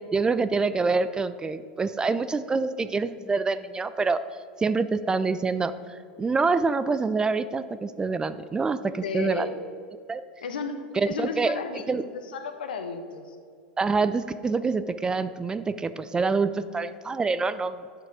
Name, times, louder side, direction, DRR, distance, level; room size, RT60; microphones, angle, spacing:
voice 1, 0.1-4.2 4.6-9.5 10.1-10.2 11.0-11.6 11.9-12.0 13.8-17.8, right 4 dB, 15° right, 13 dB, 0.3 m, -26 dB
voice 2, 9.0-9.5 10.4-13.4, left 5 dB, 70° left, 8 dB, 0.8 m, -33 dB
8.6 x 6.0 x 4.9 m, 2.3 s
figure-of-eight pair, 90°, 5 cm